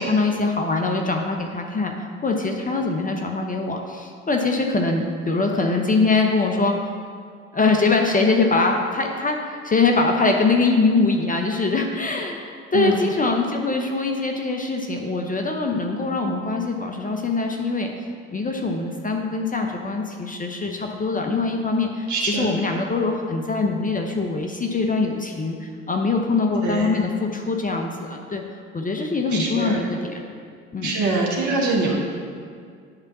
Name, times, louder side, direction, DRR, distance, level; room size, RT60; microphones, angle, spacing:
voice 1, 0.0-6.8 7.5-17.9 18.3-28.4 28.7-30.2 30.7-30.9, left 3 dB, 20° left, 2 dB, 0.7 m, -23 dB
voice 2, 22.1-22.5 26.6-26.9 29.3-29.8 30.8-31.9, right 3 dB, 50° right, -3 dB, 1.4 m, -23 dB
9.8 x 3.4 x 6.0 m, 2.1 s
hypercardioid pair, 60°, 37 cm